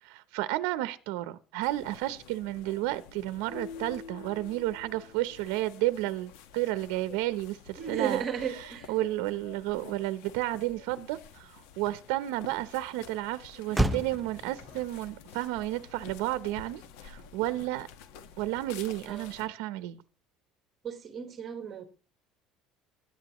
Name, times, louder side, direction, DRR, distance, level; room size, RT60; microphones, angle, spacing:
voice 1, 0.0-8.2 8.9-17.9 18.4-20.0, right 16 dB, 80° right, 0.7 m, -32 dB
sound 1, 1.6-19.5, left 7 dB, 85° left, 1.3 m, -50 dB
sound 2, 3.5-5.6, left 6 dB, 50° left, 6.9 m, -45 dB
voice 2, 7.8-8.9 19.1-19.3 20.8-21.8, right 7 dB, 30° right, 1.5 m, -34 dB
Motor vehicle (road), 11.0-18.3, right 1 dB, 5° right, 0.6 m, -37 dB
21.0 x 9.8 x 3.0 m
cardioid pair, 155°, 0 cm